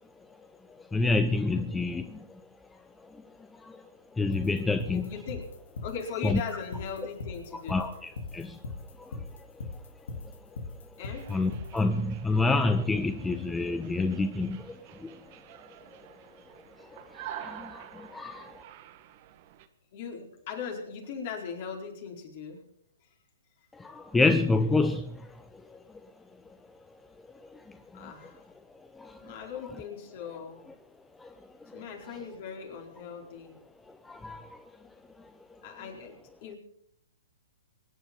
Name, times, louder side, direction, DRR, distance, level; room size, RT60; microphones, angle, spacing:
voice 1, 0.9-2.1 4.2-5.1 6.2-6.4 7.7-8.5 11.3-14.6 17.3-17.8 18.1-18.4 23.8-25.0 34.1-34.4, left 3 dB, 10° left, 9 dB, 0.7 m, -27 dB
sound 1, 4.3-11.8, left 3 dB, 70° left, 2.6 m, -39 dB
voice 2, 4.9-5.5 5.8-7.8 11.0-11.3 17.3-17.4 18.0-18.6 19.9-22.6 27.9-28.4 29.2-30.6 31.7-33.6 35.6-36.6, left 6 dB, 50° left, 2 dB, 4.5 m, -39 dB
sound 2, 11.0-19.7, right 11 dB, 45° right, 1.4 m, -48 dB
24.0 x 9.9 x 5.4 m, 0.71 s
hypercardioid pair, 130°, 0 cm